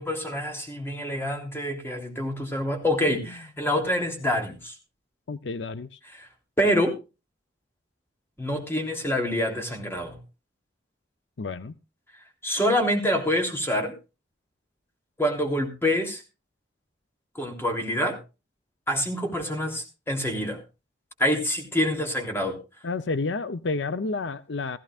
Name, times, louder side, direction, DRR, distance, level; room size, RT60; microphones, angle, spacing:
voice 1, 0.0-4.7 6.1-6.3 6.6-6.9 8.4-10.2 12.4-13.9 15.2-16.2 17.3-18.2 18.9-20.6 21.2-22.6, equal, 15° left, 3.2 m, -26 dB
voice 2, 5.3-6.0 11.4-11.7 22.8-24.8, left 3 dB, 75° left, 0.7 m, -30 dB
16.5 x 15.0 x 2.5 m
head